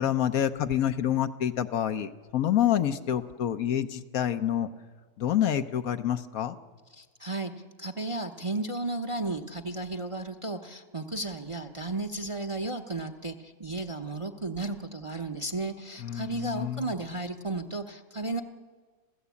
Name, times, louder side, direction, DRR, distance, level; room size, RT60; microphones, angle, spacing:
voice 1, 0.0-4.7 5.2-6.6 16.0-16.9, left 10 dB, 70° left, 9 dB, 1.3 m, -27 dB
voice 2, 6.9-7.5 7.8-18.4, right 2 dB, 25° right, 6 dB, 0.8 m, -34 dB
27.0 x 16.0 x 8.4 m, 1.4 s
omnidirectional pair, 1.6 m